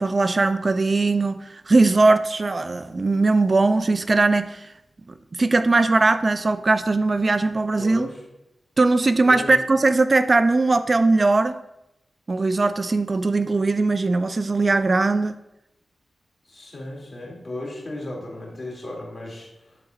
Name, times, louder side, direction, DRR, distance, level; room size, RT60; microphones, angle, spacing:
voice 1, 0.0-4.7 5.3-8.1 8.8-11.5 12.3-15.4, right 3 dB, 45° right, 11 dB, 0.3 m, -20 dB
voice 2, 7.8-8.2 9.2-9.6 16.4-19.8, left 1 dB, 45° left, -2 dB, 2.4 m, -35 dB
10.5 x 4.1 x 2.5 m, 0.88 s
cardioid pair, 50°, 0 cm